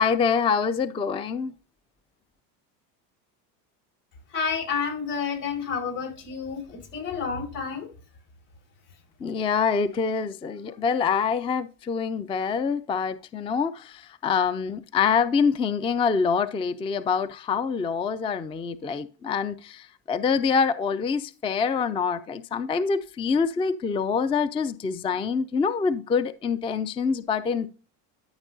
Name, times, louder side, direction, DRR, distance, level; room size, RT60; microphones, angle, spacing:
voice 1, 0.0-1.5 9.2-27.7, left 6 dB, 15° left, 14 dB, 0.3 m, -25 dB
voice 2, 4.3-7.9, left 6 dB, 80° left, 0 dB, 5.3 m, -30 dB
13.0 x 5.9 x 2.7 m, 0.36 s
hypercardioid pair, 80°, 48 cm